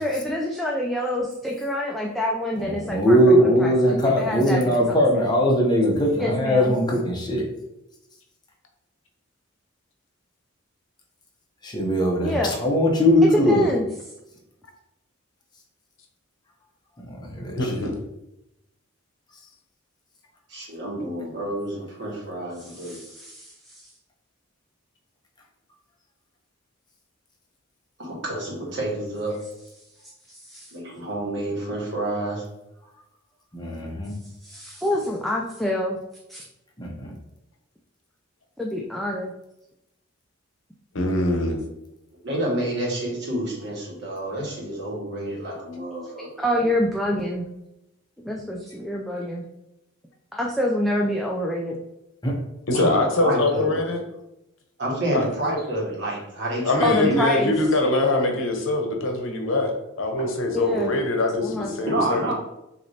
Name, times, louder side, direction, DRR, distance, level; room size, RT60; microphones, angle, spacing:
voice 1, 0.0-3.7 4.0-5.3 6.2-6.7 12.2-12.5 13.5-13.9 22.6-23.9 30.3-30.7 34.4-36.0 36.3-36.4 38.6-39.3 46.4-47.5 48.3-49.4 50.3-51.8 56.8-57.5 60.5-60.9 61.4-61.7, left 1 dB, ahead, -3 dB, 0.4 m, -27 dB
voice 2, 2.6-7.5 11.6-13.7 17.1-17.7 33.5-34.1 36.8-37.1 52.2-52.3, equal, 20° left, -1 dB, 0.8 m, -20 dB
voice 3, 17.6-17.9 40.9-41.6 52.7-54.0 55.1-55.3 56.6-62.3, left 2 dB, 70° left, 3 dB, 0.9 m, -23 dB
voice 4, 20.5-23.0 28.0-29.4 30.7-32.4 42.2-46.7 52.7-53.7 54.8-57.1 60.2-60.3 61.9-62.3, right 1 dB, 60° right, -3 dB, 1.6 m, -29 dB
6.4 x 2.9 x 2.8 m, 0.89 s
head